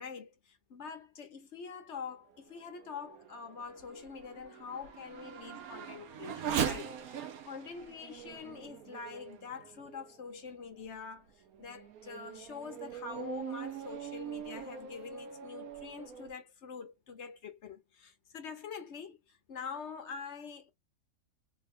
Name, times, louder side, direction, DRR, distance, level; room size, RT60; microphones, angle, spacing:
voice 1, 0.0-20.7, left 5 dB, 55° left, 1.1 m, -45 dB
Race car auto racing / Accelerating revving vroom, 2.3-10.2 10.8-10.9 11.5-16.3, right 8 dB, 75° right, 1.2 m, -41 dB
3.6 x 3.1 x 2.6 m
omnidirectional pair, 1.5 m